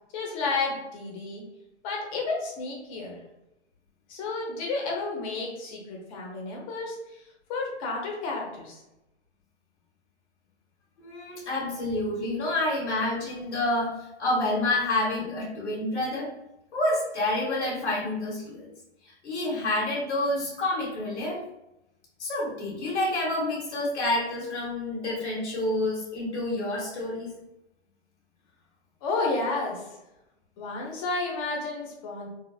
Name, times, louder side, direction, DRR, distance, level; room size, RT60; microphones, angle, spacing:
voice 1, 0.1-1.4 1.8-3.2 4.1-7.2 7.5-8.8 29.0-29.8 30.6-32.3, left 3 dB, 30° left, -1 dB, 0.9 m, -31 dB
voice 2, 11.0-13.9 14.2-16.3 16.7-18.7 19.2-21.4 22.2-27.3, left 1 dB, 75° left, -5 dB, 1.5 m, -28 dB
3.8 x 2.5 x 2.4 m, 0.90 s
hypercardioid pair, 145°, 34 cm